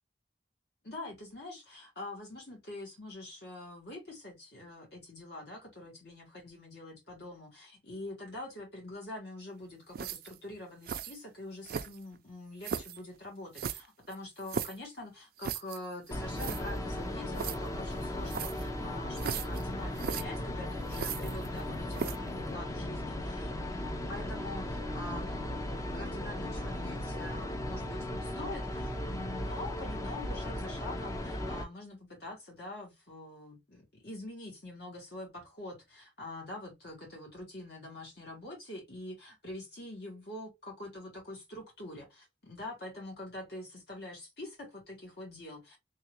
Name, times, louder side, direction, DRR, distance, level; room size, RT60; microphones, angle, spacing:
voice 1, 0.8-45.8, left 2 dB, 65° left, 2.1 m, -45 dB
sound 1, 9.9-10.4 10.8-11.2 11.6-12.1 12.6-13.0 13.5-14.8 15.4-15.8 16.1-16.2 16.4-16.6 17.3-17.6 18.3-18.7 19.2-19.6 20.0-20.2 20.9-21.6 21.9-22.3, right 7 dB, 55° right, 0.4 m, -36 dB
sound 2, 16.1-31.6, left 1 dB, 20° left, 0.5 m, -37 dB
3.4 x 2.9 x 3.0 m
head